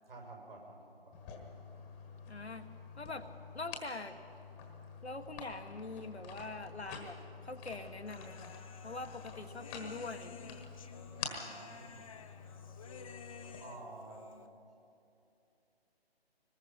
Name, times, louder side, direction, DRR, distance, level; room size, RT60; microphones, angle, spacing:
voice 1, 0.1-1.1 11.2-12.1 13.6-14.8, right 2 dB, 65° right, -1 dB, 6.3 m, -51 dB
sound 1, 1.1-13.6, left 6 dB, 15° left, 1.4 m, -48 dB
voice 2, 2.3-2.7 3.0-3.3 3.5-4.2 5.0-7.2 7.4-8.5 8.8-10.3, left 3 dB, 85° left, 6 dB, 1.5 m, -43 dB
Human voice, 8.1-14.5, left 5 dB, 35° left, 0.9 m, -53 dB
23.5 x 20.0 x 5.7 m, 2.8 s
figure-of-eight pair, 145°, 31 cm